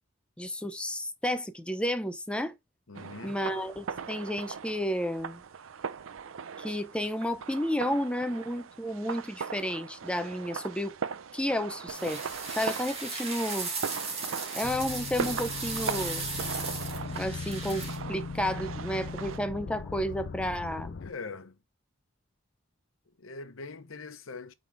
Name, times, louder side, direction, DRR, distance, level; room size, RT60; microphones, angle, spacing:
voice 1, 0.4-2.5 3.2-5.4 6.6-10.9 11.3-12.2 12.6-13.7 14.5-16.3 17.1-21.0, equal, 5° left, 0.7 m, -32 dB
voice 2, 2.9-3.4 21.0-21.6 23.2-24.5, left 3 dB, 85° left, 0.9 m, -42 dB
sound 1, 2.9-19.4, right 6 dB, 85° right, 0.5 m, -39 dB
sound 2, 11.9-18.0, right 4 dB, 30° right, 2.2 m, -36 dB
sound 3, 14.6-21.1, left 4 dB, 60° left, 0.4 m, -39 dB
8.9 x 4.0 x 3.4 m
head